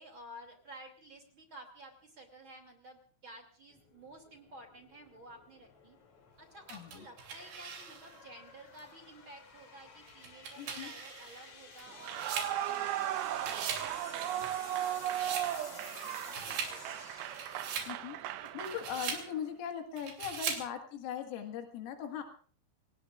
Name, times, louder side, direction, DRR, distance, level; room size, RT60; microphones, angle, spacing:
voice 1, 0.0-6.0 6.4-17.0, right 1 dB, 35° right, 3 dB, 2.4 m, -53 dB
sound 1, 3.7-19.1, left 5 dB, 40° left, 3.4 m, -54 dB
voice 2, 6.7-7.1 10.6-10.9 17.9-18.2 18.5-22.2, left 8 dB, 90° left, 4 dB, 4.5 m, -40 dB
sound 2, 6.7-8.2 8.8-8.9 10.1-13.1 13.3-13.9 14.2-15.5 16.0-16.8 17.2-17.9 18.5-19.3 20.0-20.7, right 6 dB, 60° right, 5.0 m, -40 dB
Clapping / Cheering / Applause, 12.0-19.4, right 12 dB, 80° right, 2.6 m, -37 dB
29.5 x 18.5 x 2.5 m, 0.44 s
omnidirectional pair, 5.8 m